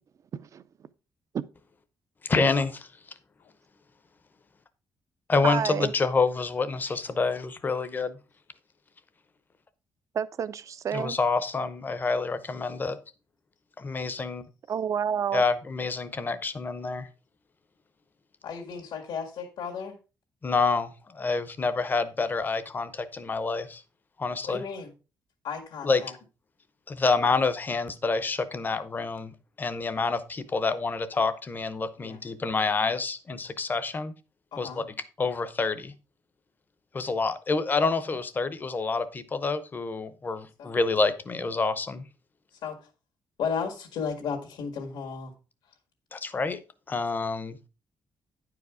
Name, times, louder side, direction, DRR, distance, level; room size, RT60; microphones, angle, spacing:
voice 1, 2.2-2.9 5.3-8.2 10.9-13.0 13.8-14.4 15.3-17.1 20.4-23.8 24.2-24.6 25.8-26.0 26.9-34.1 34.6-34.8 35.2-35.9 36.9-42.0 46.1-46.6 46.9-47.6, left 4 dB, 25° left, 0.7 m, -27 dB
voice 2, 5.4-5.9 10.1-11.2 14.7-15.4, right 8 dB, 40° right, 0.5 m, -29 dB
voice 3, 18.4-20.0 24.4-24.9 25.4-26.1 32.0-32.2 34.5-34.9 40.6-40.7 42.6-42.8 43.4-45.3, left 6 dB, 80° left, 1.9 m, -34 dB
9.9 x 4.9 x 4.9 m
cardioid pair, 170°, 8 cm